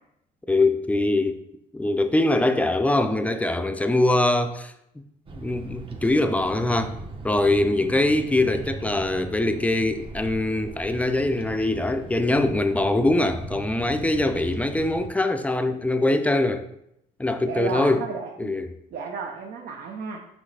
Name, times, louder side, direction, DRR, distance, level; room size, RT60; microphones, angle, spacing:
voice 1, 0.5-1.4 1.7-4.7 5.3-6.9 7.2-16.7 17.2-18.0 18.4-18.7, left 2 dB, 10° left, 0.4 m, -23 dB
Bird vocalization bird call bird song, 5.3-15.1, right 3 dB, 30° right, 0.8 m, -38 dB
voice 2, 17.5-18.6 18.9-20.2, right 5 dB, 65° right, 0.8 m, -33 dB
6.1 x 4.8 x 3.3 m
cardioid pair, 110°, 17 cm